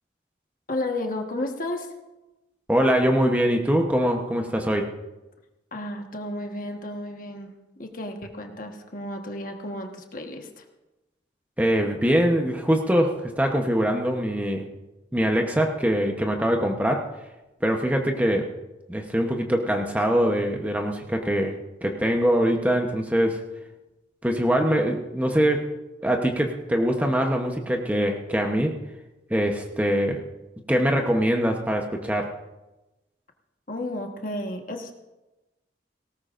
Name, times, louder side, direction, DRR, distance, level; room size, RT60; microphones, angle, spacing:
voice 1, 0.7-1.9 5.7-10.6 33.7-34.9, left 1 dB, 45° left, 3 dB, 1.3 m, -33 dB
voice 2, 2.7-4.9 11.6-14.6 15.1-17.1 17.6-18.5 18.9-21.6 21.8-23.4 24.2-25.7 26.0-28.8 29.3-30.2 30.7-32.4, equal, 10° right, 2 dB, 0.9 m, -23 dB
19.0 x 17.5 x 2.5 m, 1.1 s
head